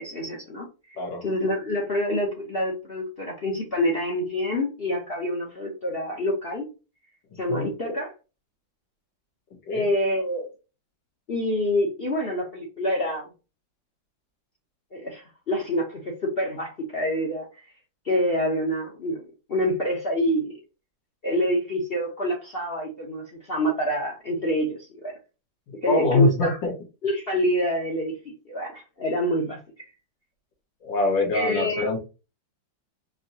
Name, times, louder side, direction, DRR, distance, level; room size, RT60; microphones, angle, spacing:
voice 1, 0.0-6.7 7.4-8.1 9.7-10.5 11.3-13.3 14.9-17.7 18.0-19.2 19.5-20.6 21.2-25.2 25.7-26.6 27.0-29.9 31.3-32.0, equal, 45° left, -2 dB, 0.8 m, -27 dB
voice 2, 25.9-26.7 30.8-32.0, left 2 dB, 80° left, 0 dB, 2.1 m, -23 dB
4.6 x 2.8 x 2.7 m, 0.31 s
omnidirectional pair, 2.0 m